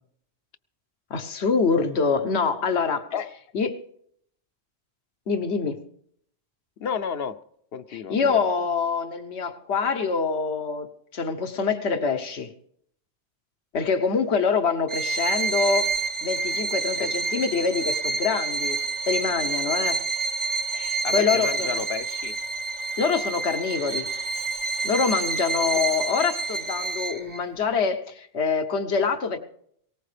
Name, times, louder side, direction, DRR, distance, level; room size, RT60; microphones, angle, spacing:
voice 1, 1.1-3.0 3.5-3.8 5.3-5.8 7.9-12.5 13.7-15.9 16.2-18.8 19.1-20.0 20.7-21.8 23.0-24.1 24.8-29.4, left 5 dB, 85° left, 9 dB, 1.3 m, -25 dB
voice 2, 6.8-7.4 7.7-8.3 17.0-17.1 21.0-22.3, left 7 dB, 70° left, 12 dB, 0.9 m, -31 dB
Bowed string instrument, 14.9-27.4, right 3 dB, 35° right, 0.7 m, -28 dB
18.5 x 18.5 x 3.4 m, 0.68 s
omnidirectional pair, 1.1 m